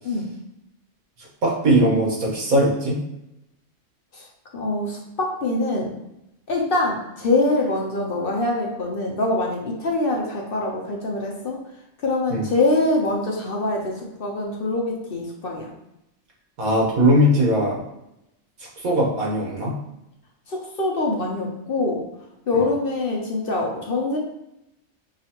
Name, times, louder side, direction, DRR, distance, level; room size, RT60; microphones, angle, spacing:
voice 1, 1.4-3.0 12.3-12.4 16.6-17.8 18.8-19.7, equal, 90° right, -3 dB, 1.6 m, -19 dB
voice 2, 4.5-6.0 6.5-11.6 12.0-15.7 20.5-22.0 22.5-24.2, left 2 dB, 50° left, -1 dB, 0.8 m, -24 dB
5.9 x 2.4 x 2.9 m, 0.84 s
omnidirectional pair, 1.4 m